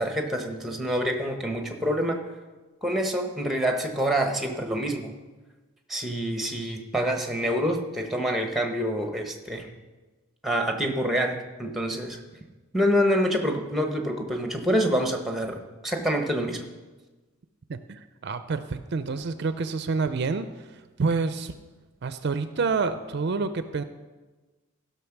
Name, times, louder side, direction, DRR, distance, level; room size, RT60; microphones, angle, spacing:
voice 1, 0.0-2.2 2.8-5.1 5.9-9.7 10.4-12.2 12.7-16.6, equal, ahead, 4 dB, 0.9 m, -26 dB
voice 2, 17.7-20.7 21.0-21.5 22.0-23.8, right 4 dB, 50° right, 11 dB, 0.4 m, -28 dB
15.5 x 5.9 x 5.9 m, 1.3 s
head